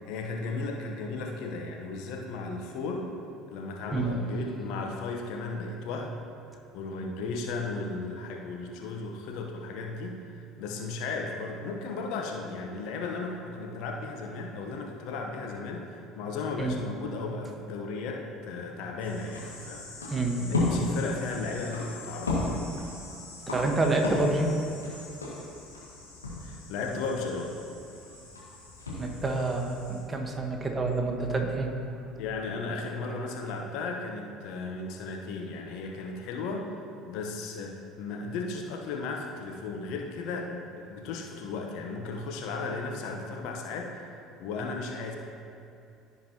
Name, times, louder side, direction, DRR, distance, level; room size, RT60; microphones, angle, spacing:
voice 1, 0.1-3.1 3.5-6.2 6.7-20.1 20.4-22.6 26.4-27.5 32.2-45.2, left 3 dB, 60° left, 1 dB, 0.9 m, -35 dB
sound 1, 19.0-30.0, left 2 dB, 90° left, 1.8 m, -35 dB
voice 2, 20.1-20.4 23.5-24.5 29.0-31.7, right 2 dB, 20° right, 2 dB, 1.3 m, -28 dB
15.5 x 5.2 x 2.9 m, 2.6 s
figure-of-eight pair, 60°, 0 cm